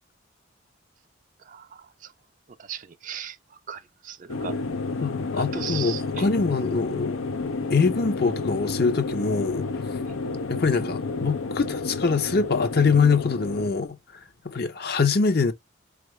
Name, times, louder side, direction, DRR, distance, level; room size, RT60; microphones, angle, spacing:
voice 1, 1.5-2.1 2.6-4.6 5.3-6.3, right 8 dB, 40° right, 0.4 m, -37 dB
sound 1, 4.3-13.7, left 3 dB, 85° left, 0.6 m, -30 dB
voice 2, 5.0-7.2 7.7-9.7 10.5-14.0 14.4-15.5, left 4 dB, 50° left, 0.7 m, -24 dB
4.7 x 2.3 x 3.0 m
head